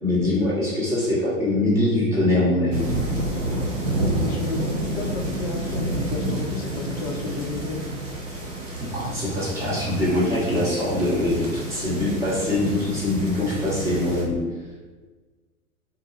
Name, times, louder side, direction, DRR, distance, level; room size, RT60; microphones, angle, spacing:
voice 1, 0.0-2.9 8.8-14.4, left 1 dB, 5° right, -9 dB, 1.0 m, -23 dB
sound 1, 2.7-14.2, right 1 dB, 60° right, 1.1 m, -29 dB
voice 2, 4.1-7.8, left 3 dB, 25° left, 0 dB, 0.3 m, -32 dB
3.8 x 2.2 x 3.1 m, 1.3 s
figure-of-eight pair, 105°, 43 cm